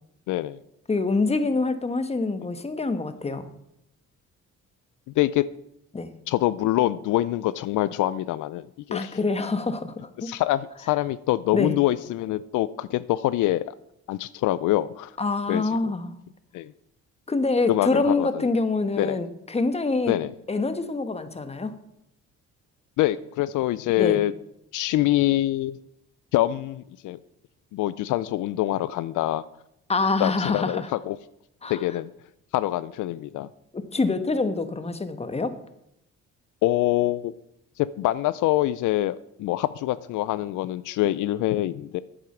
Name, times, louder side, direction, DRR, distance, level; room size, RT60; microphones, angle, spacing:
voice 1, 0.3-0.6 5.2-5.4 6.3-9.2 10.2-13.7 14.1-15.1 15.5-15.9 16.5-16.7 17.7-18.5 19.0-19.2 20.1-20.3 23.0-24.3 24.7-25.8 26.3-27.2 27.7-29.4 30.2-31.2 31.7-32.1 32.5-33.5 36.6-37.3 37.8-42.0, left 15 dB, 80° left, 16 dB, 0.5 m, -25 dB
voice 2, 0.9-3.5 5.9-6.1 8.9-10.3 11.5-11.7 15.2-16.2 17.3-20.2 20.5-21.8 24.0-24.2 29.9-30.9 31.6-31.8 33.7-35.6, left 3 dB, 20° left, 10 dB, 1.2 m, -25 dB
8.8 x 8.0 x 7.1 m, 0.81 s
cardioid pair, 90°, 30 cm